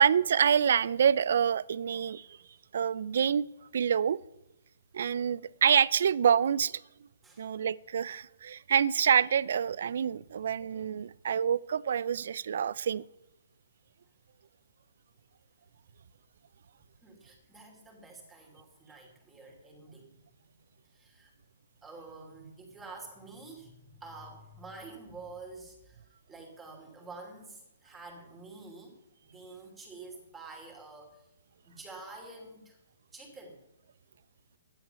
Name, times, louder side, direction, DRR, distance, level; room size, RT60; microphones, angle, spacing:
voice 1, 0.0-2.3 2.7-3.5 3.7-4.2 4.9-6.8 7.4-13.0, right 8 dB, 60° right, 0.5 m, -26 dB
voice 2, 17.0-20.2 20.9-21.3 21.8-28.9 29.2-31.3 31.6-32.8 33.1-33.6, right 3 dB, 10° right, 2.9 m, -48 dB
13.0 x 11.0 x 7.0 m
hypercardioid pair, 165°, 0 cm